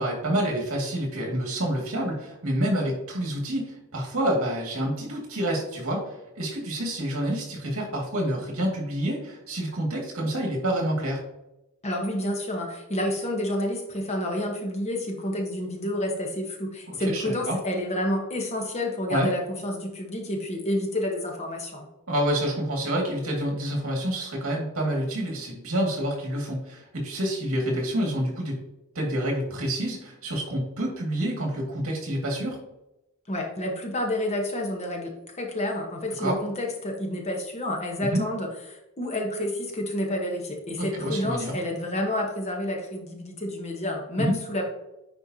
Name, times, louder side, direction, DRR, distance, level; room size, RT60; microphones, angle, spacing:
voice 1, 0.0-11.2 16.9-17.6 19.1-19.3 22.1-28.6 29.0-32.6 36.2-36.4 38.1-38.2 40.8-41.5 44.2-44.3, right 1 dB, 70° right, -1 dB, 2.2 m, -28 dB
voice 2, 11.8-21.9 33.3-44.7, left 1 dB, 30° left, 2 dB, 1.1 m, -29 dB
9.6 x 4.5 x 2.8 m, 0.91 s
head